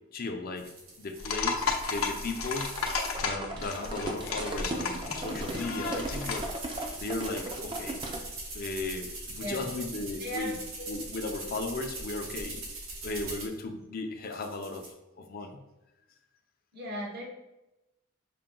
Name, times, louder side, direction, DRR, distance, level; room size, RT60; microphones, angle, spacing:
voice 1, 0.1-0.7 1.0-2.7 3.2-8.0 8.5-12.6 13.0-14.8 15.2-15.6, left 2 dB, 45° left, 4 dB, 0.5 m, -36 dB
sound 1, 0.6-3.2 3.6-13.6 14.2-14.9, right 2 dB, 80° right, 1.0 m, -42 dB
sound 2, 1.2-6.5, left 5 dB, 85° left, 0.6 m, -33 dB
sound 3, 2.7-8.2, right 2 dB, 25° right, 0.5 m, -37 dB
voice 2, 9.4-9.7 10.2-10.6 16.7-17.3, equal, 50° right, -1 dB, 1.0 m, -36 dB
5.6 x 2.2 x 3.8 m, 0.96 s
head